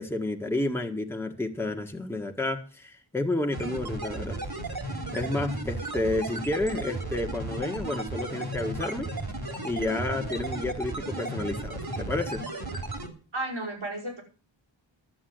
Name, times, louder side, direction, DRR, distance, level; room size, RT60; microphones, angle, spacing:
voice 1, 0.0-4.4 5.1-9.1 9.6-12.4, left 2 dB, 5° left, 2 dB, 1.7 m, -30 dB
sound 1, 3.5-13.1, right 2 dB, 50° right, 3.0 m, -34 dB
voice 2, 13.3-14.2, right 1 dB, 75° right, -2 dB, 5.5 m, -33 dB
11.5 x 8.1 x 7.9 m, 0.37 s
wide cardioid pair, 80°, 48 cm